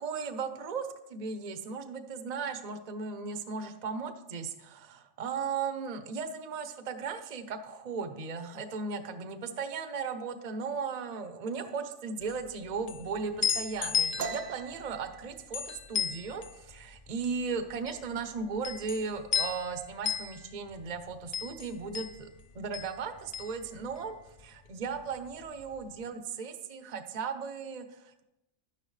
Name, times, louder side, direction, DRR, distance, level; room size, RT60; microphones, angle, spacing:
voice 1, 0.0-22.3 22.5-28.2, right 5 dB, 40° right, 8 dB, 0.7 m, -36 dB
sound 1, 12.2-24.5 24.7-25.8, left 7 dB, 65° left, 0.3 m, -35 dB
sound 2, 14.2-17.6 17.9-18.3 18.6-19.2 19.4-20.2, right 5 dB, 75° right, 1.0 m, -42 dB
11.0 x 9.9 x 3.2 m, 0.92 s
omnidirectional pair, 1.4 m